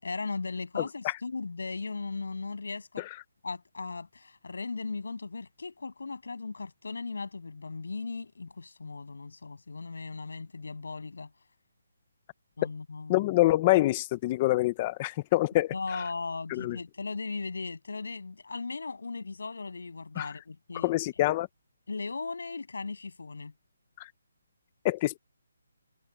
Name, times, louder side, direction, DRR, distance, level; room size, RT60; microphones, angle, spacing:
voice 1, 0.0-3.1 3.4-11.3 12.6-13.3 15.7-20.9 21.9-23.5, left 4 dB, 80° left, 6.9 m, -37 dB
voice 2, 13.1-16.0 16.5-16.8 20.2-20.3 20.8-21.5 24.0-24.1 24.8-25.2, left 17 dB, 20° left, 0.5 m, -26 dB
hypercardioid pair, 175°, 0 cm